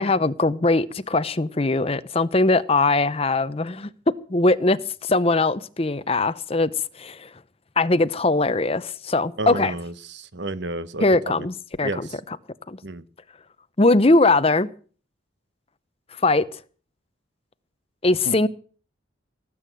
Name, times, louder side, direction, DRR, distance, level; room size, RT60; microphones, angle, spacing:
voice 1, 0.0-3.9 4.3-6.7 7.0-7.3 7.8-9.8 11.0-11.9 12.7-12.8 13.8-14.7 16.2-16.4 18.0-18.5, left 2 dB, 30° left, 0.7 m, -21 dB
voice 2, 9.4-11.0 11.4-11.5 11.8-12.1 12.8-13.0 18.2-18.4, right 1 dB, 60° right, 1.1 m, -31 dB
18.0 x 8.6 x 7.7 m
head